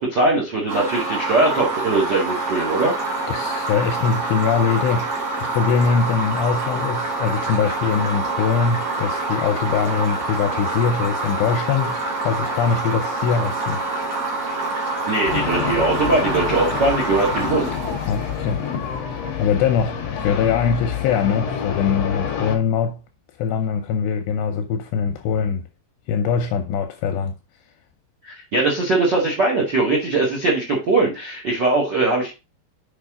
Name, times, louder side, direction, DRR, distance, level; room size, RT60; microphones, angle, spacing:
voice 1, 0.0-2.9 15.1-17.7 28.2-32.3, right 2 dB, 70° right, 1.0 m, -20 dB
sound 1, 0.7-18.7, right 3 dB, 45° right, 3.1 m, -26 dB
voice 2, 3.3-5.1 5.4-12.0 12.2-13.8 18.1-18.6 19.4-23.0 23.4-25.6 26.1-27.3, left 6 dB, 80° left, 2.7 m, -22 dB
sound 2, 15.3-22.6, left 8 dB, 50° left, 2.3 m, -28 dB
7.1 x 5.6 x 3.7 m
omnidirectional pair, 5.1 m